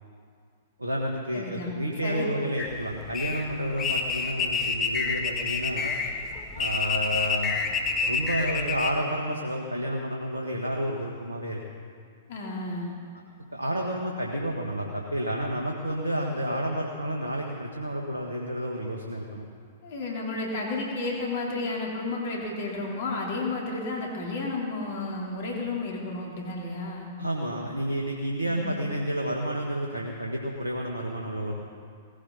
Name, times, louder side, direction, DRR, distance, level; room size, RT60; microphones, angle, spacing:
voice 1, 0.8-5.9 6.5-11.6 13.5-19.4 27.2-31.5, equal, 90° right, 0 dB, 1.6 m, -30 dB
voice 2, 1.3-1.7 2.0-2.2 12.3-12.9 19.8-27.1 28.4-28.9, left 2 dB, 55° left, -2 dB, 3.8 m, -32 dB
sound 1, 2.6-8.9, left 5 dB, 25° left, 1.7 m, -28 dB
19.0 x 16.5 x 4.2 m, 2.2 s
figure-of-eight pair, 110°, 0 cm